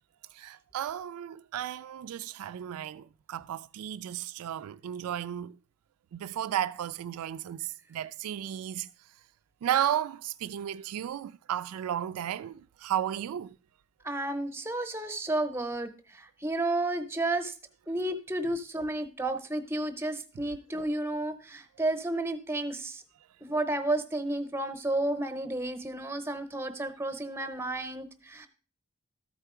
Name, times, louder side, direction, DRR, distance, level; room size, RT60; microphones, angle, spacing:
voice 1, 0.3-5.5 6.1-8.9 9.6-13.6, right 10 dB, 85° right, 0.3 m, -34 dB
voice 2, 14.0-17.5 17.9-23.0 23.4-28.5, right 2 dB, 10° right, 0.7 m, -32 dB
13.0 x 4.5 x 4.8 m
head